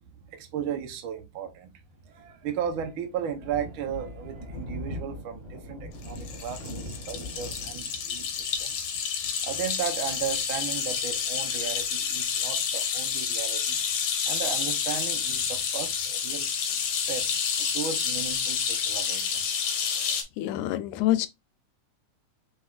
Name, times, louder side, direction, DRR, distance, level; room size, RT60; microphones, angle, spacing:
voice 1, 0.3-1.7 2.0-8.8 9.4-13.8 14.3-16.7 17.1-17.3 17.6-19.6, right 8 dB, 85° right, 1.1 m, -35 dB
Thunder, 2.1-11.3, equal, 15° right, 1.5 m, -41 dB
sound 1, 6.0-20.2, left 7 dB, 65° left, 1.6 m, -29 dB
voice 2, 20.4-21.3, left 14 dB, 85° left, 2.1 m, -26 dB
5.1 x 4.0 x 2.4 m
omnidirectional pair, 3.5 m